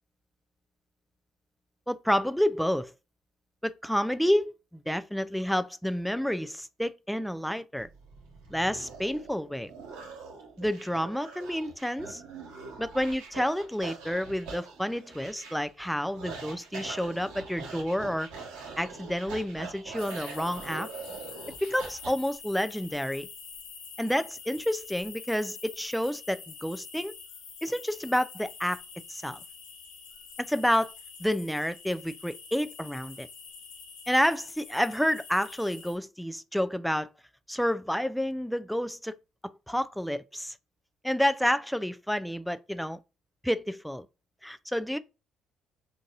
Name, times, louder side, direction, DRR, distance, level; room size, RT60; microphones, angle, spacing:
voice 1, 1.9-2.9 3.6-7.9 8.5-9.7 10.6-12.2 12.8-18.3 18.8-20.9 21.6-23.3 24.0-27.1 27.6-28.8 29.1-29.4 30.4-30.9 31.2-33.3 34.1-37.1 37.5-39.1 39.4-40.5 41.0-43.0 43.4-44.1 44.4-45.0, equal, ahead, 0.3 m, -29 dB
sound 1, 7.8-22.1, right 4 dB, 80° right, 1.2 m, -44 dB
sound 2, 20.0-36.0, left 6 dB, 80° left, 0.7 m, -46 dB
3.9 x 2.6 x 2.4 m
hypercardioid pair, 65°, 0 cm